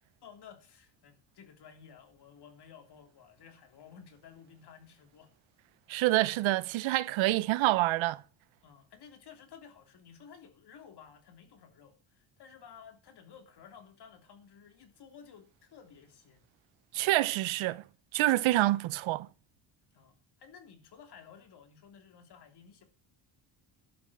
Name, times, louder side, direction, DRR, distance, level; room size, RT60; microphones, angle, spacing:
voice 1, 0.2-5.3 8.6-16.5 19.9-22.8, left 7 dB, 55° left, 3.3 m, -54 dB
voice 2, 5.9-8.2 16.9-17.8 18.1-19.3, right 17 dB, 80° right, 0.8 m, -27 dB
12.0 x 6.6 x 7.9 m
cardioid pair, 115°, 47 cm